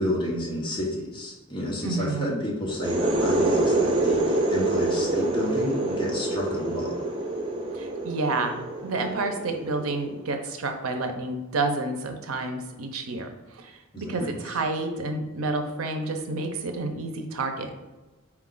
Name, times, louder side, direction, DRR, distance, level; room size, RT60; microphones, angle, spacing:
voice 1, 0.0-6.9 13.9-14.6, left 1 dB, 25° left, -2 dB, 0.7 m, -31 dB
voice 2, 1.8-2.4 7.7-17.7, right 3 dB, 80° right, 5 dB, 0.6 m, -30 dB
sound 1, 2.7-10.2, right 2 dB, 25° right, 0.4 m, -26 dB
4.3 x 2.3 x 3.7 m, 1.1 s
head